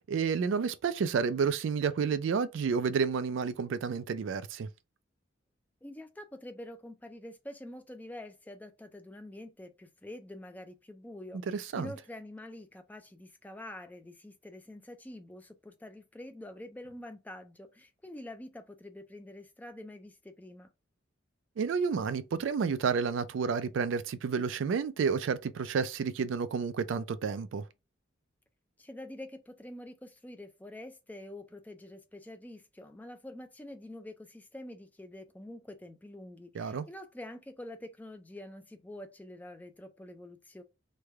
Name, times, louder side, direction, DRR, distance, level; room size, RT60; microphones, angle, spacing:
voice 1, 0.1-4.7 11.5-11.9 21.6-27.6 36.5-36.8, right 6 dB, 75° right, 0.3 m, -30 dB
voice 2, 5.8-20.7 28.8-40.6, left 1 dB, 10° left, 0.3 m, -46 dB
3.2 x 2.2 x 3.5 m
head